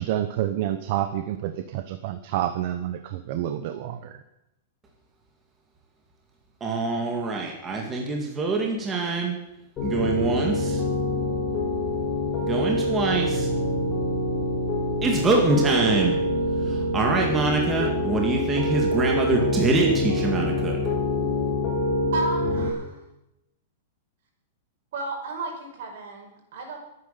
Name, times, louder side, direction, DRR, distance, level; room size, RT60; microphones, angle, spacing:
voice 1, 0.0-4.2, right 12 dB, 40° right, 9 dB, 1.0 m, -28 dB
voice 2, 6.6-9.4 9.8-10.8 12.4-13.5 15.0-16.2 16.7-20.8, right 3 dB, 10° right, 0 dB, 2.0 m, -24 dB
Piano, 9.8-22.7, left 1 dB, 20° left, 3.7 m, -25 dB
voice 3, 22.1-23.0 24.9-26.8, right 2 dB, 55° right, 3 dB, 5.4 m, -32 dB
22.0 x 9.7 x 6.8 m, 0.89 s
supercardioid pair, 175°, 0 cm